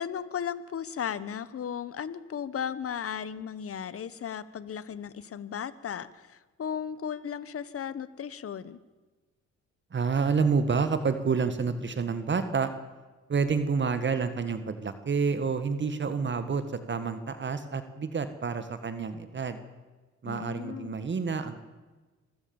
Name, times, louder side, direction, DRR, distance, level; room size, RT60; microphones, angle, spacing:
voice 1, 0.0-8.8 20.2-21.0, left 8 dB, 50° left, 16 dB, 1.2 m, -35 dB
voice 2, 9.9-12.7 13.3-19.6 20.2-21.6, right 5 dB, 40° right, 10 dB, 1.7 m, -28 dB
24.5 x 16.0 x 7.2 m, 1.3 s
cardioid pair, 90°, 30 cm